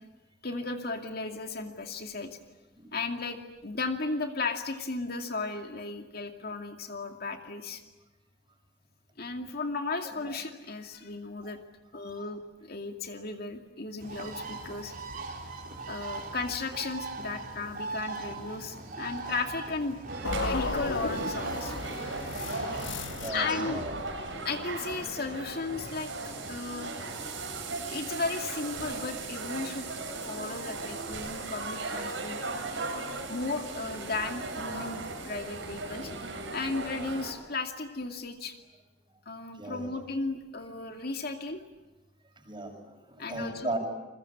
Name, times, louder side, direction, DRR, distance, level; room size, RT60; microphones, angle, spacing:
voice 1, 0.4-2.4 2.9-7.8 9.2-11.6 11.9-14.9 15.9-21.7 23.3-23.8 24.4-26.1 26.5-27.0 27.9-29.9 30.2-32.4 33.3-36.1 36.5-38.5 39.3-41.6 43.2-43.8, left 3 dB, 55° left, 5 dB, 2.4 m, -35 dB
voice 2, 10.0-10.4 11.4-11.5 11.9-12.0 17.2-17.4 21.7-22.0 22.4-22.5 23.0-23.9 37.0-37.1 39.5-39.9 42.4-43.8, right 2 dB, 25° right, 4 dB, 6.3 m, -38 dB
Bird, 14.0-23.3, right 3 dB, 50° right, 4.5 m, -40 dB
sound 1, 20.1-37.3, right 3 dB, 85° right, 7.3 m, -37 dB
sound 2, 20.2-24.4, left 3 dB, 80° left, 1.4 m, -35 dB
29.5 x 22.5 x 8.7 m, 1.1 s
head